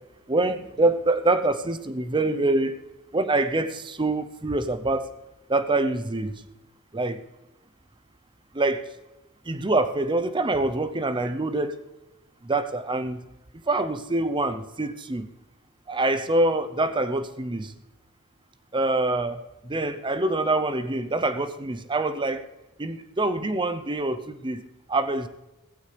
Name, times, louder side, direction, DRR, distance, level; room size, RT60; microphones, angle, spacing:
voice 1, 0.3-2.8 3.1-5.1 5.5-6.4 6.9-7.2 8.5-8.9 9.5-11.8 12.4-13.3 13.7-15.3 15.9-17.7 18.7-22.5 22.8-25.3, right 2 dB, 20° right, 11 dB, 0.6 m, -25 dB
16.0 x 15.5 x 3.3 m, 1.0 s
head